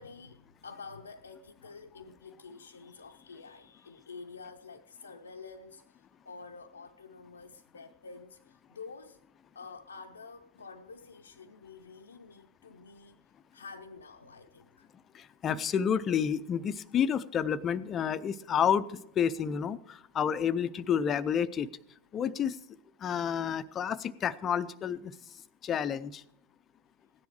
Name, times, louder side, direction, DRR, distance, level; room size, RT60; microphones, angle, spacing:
voice 1, 0.0-9.2 9.5-13.2 13.5-14.9, left 4 dB, 75° left, 0.7 m, -49 dB
voice 2, 15.1-18.8 19.2-21.7 22.1-22.6 23.0-25.2 25.6-26.2, left 8 dB, 25° left, 0.6 m, -30 dB
16.5 x 10.5 x 4.8 m
figure-of-eight pair, 90°, 0 cm